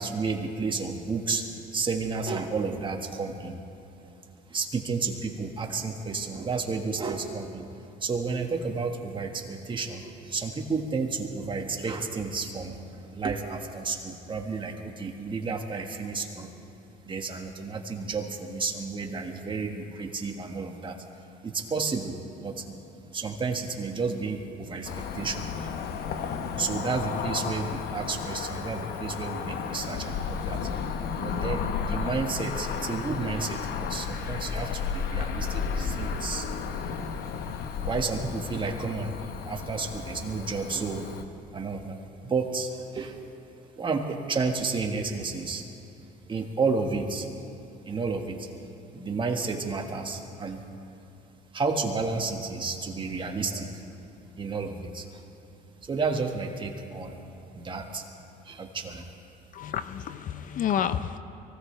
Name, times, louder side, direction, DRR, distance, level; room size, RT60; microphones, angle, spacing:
voice 1, 0.0-1.5 1.7-3.6 4.5-7.6 8.0-12.8 13.1-16.5 17.0-21.0 21.4-22.8 23.1-25.7 26.6-30.7 31.2-36.5 37.8-39.1 39.4-41.1 41.5-42.0 42.2-43.2 43.8-45.6 46.3-47.3 47.8-48.5 48.9-50.6 51.5-53.9 54.4-55.2 55.8-57.2 57.5-58.0 58.4-59.1, right 4 dB, 30° right, 2 dB, 1.6 m, -31 dB
Cricket / Motor vehicle (road), 24.8-41.2, left 6 dB, 70° left, 1.0 m, -33 dB
voice 2, 59.5-61.2, left 9 dB, 50° left, 12 dB, 0.6 m, -29 dB
23.5 x 16.5 x 3.3 m, 3.0 s
cardioid pair, 110°, 17 cm